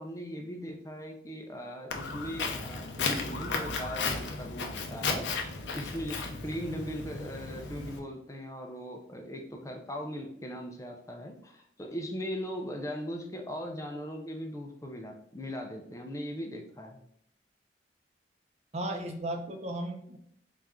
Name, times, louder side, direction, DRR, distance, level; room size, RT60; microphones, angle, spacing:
voice 1, 0.0-17.0, equal, 15° left, 2 dB, 0.4 m, -39 dB
Walk footsteps, 1.9-8.0, left 4 dB, 80° left, 0.6 m, -34 dB
voice 2, 18.7-20.2, right 1 dB, 35° right, 4 dB, 0.5 m, -35 dB
4.2 x 2.4 x 3.5 m, 0.69 s
head